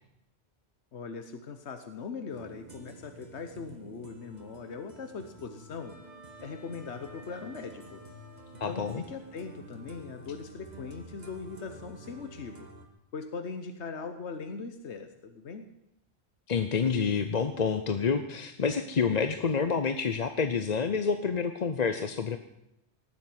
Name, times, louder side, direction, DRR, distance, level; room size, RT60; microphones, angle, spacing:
voice 1, 0.9-6.0 6.4-8.0 8.7-12.7 13.1-15.7, left 5 dB, 80° left, 8 dB, 1.4 m, -40 dB
sound 1, 2.3-12.9, right 2 dB, 40° right, 2.0 m, -50 dB
Wind instrument woodwind instrument, 5.8-9.0, left 1 dB, ahead, 4.5 m, -54 dB
voice 2, 8.6-9.0 16.5-22.4, left 5 dB, 40° left, 8 dB, 0.8 m, -28 dB
18.5 x 7.7 x 9.6 m, 0.86 s
omnidirectional pair, 1.1 m